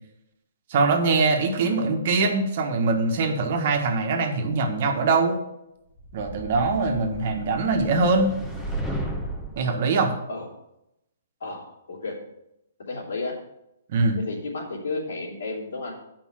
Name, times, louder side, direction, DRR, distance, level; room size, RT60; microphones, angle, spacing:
voice 1, 0.7-5.4 6.1-8.3 9.6-10.1 13.9-14.2, right 3 dB, 50° right, 4 dB, 1.5 m, -22 dB
sound 1, 6.0-9.6, right 1 dB, 10° left, 1.2 m, -34 dB
voice 2, 12.9-13.3 14.1-16.0, left 3 dB, 80° left, -2 dB, 3.1 m, -32 dB
7.3 x 5.4 x 7.5 m, 0.85 s
hypercardioid pair, 150°, 0 cm